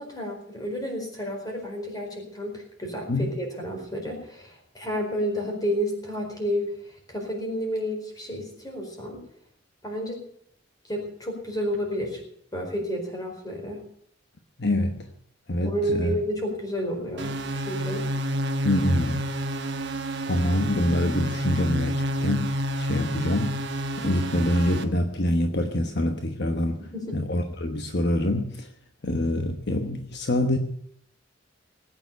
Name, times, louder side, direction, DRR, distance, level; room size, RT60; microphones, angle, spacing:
voice 1, 0.0-9.3 9.8-10.2 10.8-12.2 12.5-13.8 15.6-18.1 26.9-27.2, equal, 20° left, 1 dB, 4.5 m, -31 dB
voice 2, 14.6-15.1 15.5-16.1 18.6-19.3 20.2-28.7 29.0-30.6, left 1 dB, 60° left, 5 dB, 1.2 m, -26 dB
sound 1, 17.2-24.8, equal, 60° right, 1.3 m, -29 dB
19.0 x 9.1 x 6.9 m, 0.66 s
head